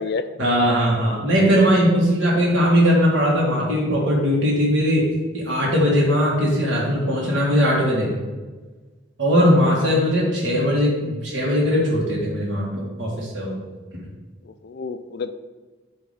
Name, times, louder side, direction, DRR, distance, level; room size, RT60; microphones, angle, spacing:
voice 1, 0.4-8.1 9.2-13.6, equal, 65° right, -4 dB, 1.4 m, -19 dB
voice 2, 9.7-10.5 14.4-15.3, left 4 dB, 50° left, 9 dB, 0.4 m, -31 dB
8.1 x 2.9 x 5.4 m, 1.3 s
head